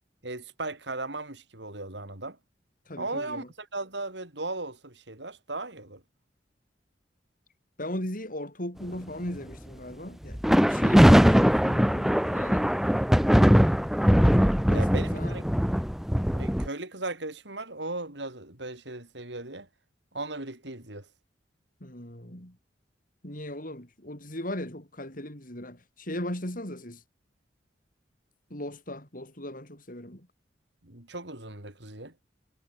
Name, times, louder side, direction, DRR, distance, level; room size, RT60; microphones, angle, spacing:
voice 1, 0.2-2.4 3.0-6.0 14.7-15.4 16.3-19.7 20.1-21.0 30.8-32.1, right 2 dB, 70° right, 4.8 m, -37 dB
voice 2, 2.9-3.5 7.8-10.4 10.7-12.7 14.7-15.4 21.8-22.6 23.2-27.0 28.5-30.3, left 1 dB, 50° left, 7.7 m, -38 dB
sound 1, 10.3-16.7, equal, ahead, 1.1 m, -21 dB
head